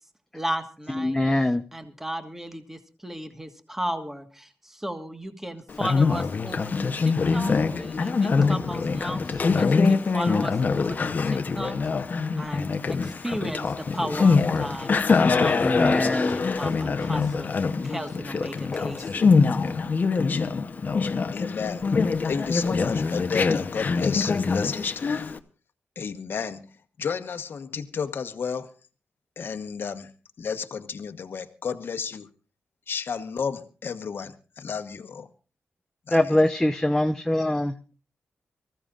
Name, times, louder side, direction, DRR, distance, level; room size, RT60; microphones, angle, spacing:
voice 1, 0.3-1.2 1.7-6.7 7.0-11.0 11.3-11.7 12.4-14.9 15.4-19.3, right 1 dB, 10° right, 7 dB, 1.5 m, -35 dB
voice 2, 1.0-1.6 15.6-16.4 36.1-37.7, left 1 dB, 10° left, 6 dB, 0.8 m, -23 dB
Conversation, 5.7-25.4, left 4 dB, 45° left, 0.9 m, -24 dB
voice 3, 21.3-21.9 22.2-25.4 26.0-26.6 27.0-28.7 29.4-30.1 30.4-32.3 32.9-35.3 36.1-36.3, left 6 dB, 60° left, 6 dB, 1.2 m, -32 dB
25.0 x 15.0 x 2.5 m, 0.34 s
wide cardioid pair, 115°, 4 cm